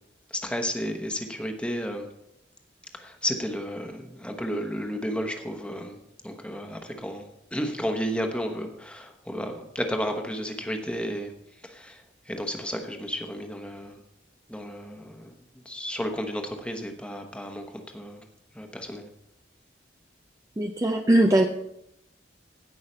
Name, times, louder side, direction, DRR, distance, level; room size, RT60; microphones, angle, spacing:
voice 1, 0.3-2.1 2.9-6.0 6.2-7.2 7.5-11.3 11.6-14.0 14.5-15.3 15.6-18.2 18.5-19.1, equal, 5° left, 4 dB, 1.0 m, -32 dB
voice 2, 20.6-21.5, right 1 dB, 15° right, 4 dB, 0.4 m, -20 dB
16.5 x 5.7 x 4.4 m, 0.82 s
head